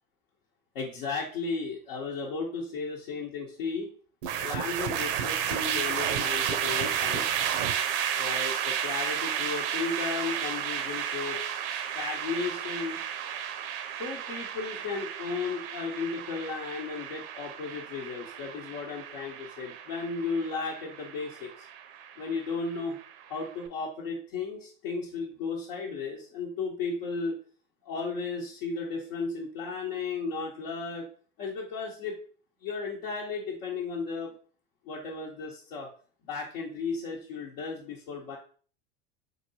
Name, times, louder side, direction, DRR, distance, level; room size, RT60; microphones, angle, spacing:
voice 1, 0.7-3.9 4.4-7.3 8.2-13.0 14.0-21.7 22.2-23.0 23.3-27.3 27.8-31.1 31.4-32.2 32.6-34.3 34.8-35.9 36.2-38.4, left 4 dB, 75° left, -4 dB, 0.9 m, -34 dB
sound 1, 4.2-23.5, right 9 dB, 65° right, 0.6 m, -32 dB
3.8 x 3.3 x 2.7 m, 0.42 s
hypercardioid pair, 90°, 29 cm